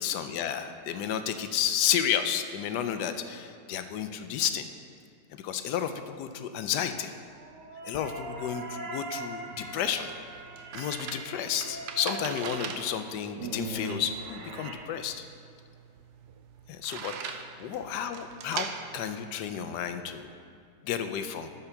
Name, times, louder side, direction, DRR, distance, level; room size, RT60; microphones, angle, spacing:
voice 1, 0.0-4.7 5.3-7.1 7.8-10.4 10.7-15.2 16.7-20.3 20.8-21.5, left 9 dB, 90° left, 8 dB, 1.2 m, -32 dB
sound 1, 7.3-14.7, right 2 dB, 55° right, 1.5 m, -40 dB
sound 2, 9.3-20.2, right 7 dB, 90° right, 1.2 m, -41 dB
12.5 x 4.4 x 5.8 m, 2.4 s
omnidirectional pair, 1.7 m